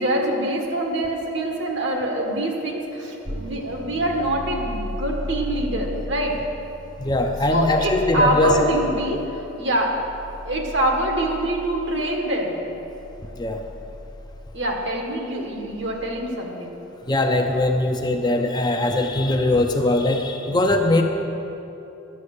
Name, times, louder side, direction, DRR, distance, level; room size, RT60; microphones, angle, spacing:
voice 1, 0.0-6.4 7.5-9.9 10.4-12.6 14.5-16.8, right 1 dB, 60° right, 1 dB, 1.5 m, -25 dB
sound 1, 3.3-16.0, left 1 dB, 25° right, 0.8 m, -36 dB
voice 2, 7.0-8.6 13.4-13.7 17.1-21.0, left 2 dB, 20° left, 3 dB, 0.6 m, -21 dB
11.0 x 7.5 x 6.6 m, 3.0 s
head